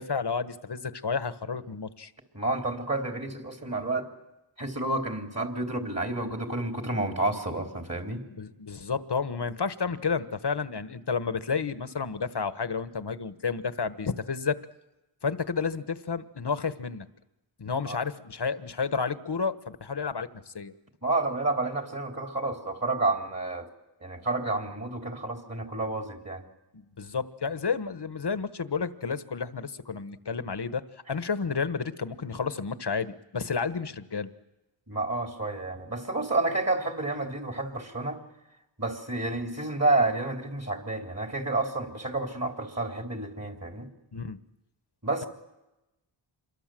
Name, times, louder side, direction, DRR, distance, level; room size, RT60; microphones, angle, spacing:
voice 1, 0.0-2.1 8.3-14.6 15.2-17.1 17.6-20.7 26.7-30.8 31.1-34.3 44.1-44.4, left 5 dB, 50° left, 12 dB, 1.4 m, -31 dB
voice 2, 2.3-4.1 4.6-8.2 17.8-18.0 21.0-23.7 24.0-26.5 34.9-38.2 38.8-43.9 45.0-45.3, right 2 dB, 30° right, 3 dB, 3.4 m, -30 dB
27.0 x 22.5 x 7.7 m, 0.97 s
wide cardioid pair, 55°, 50 cm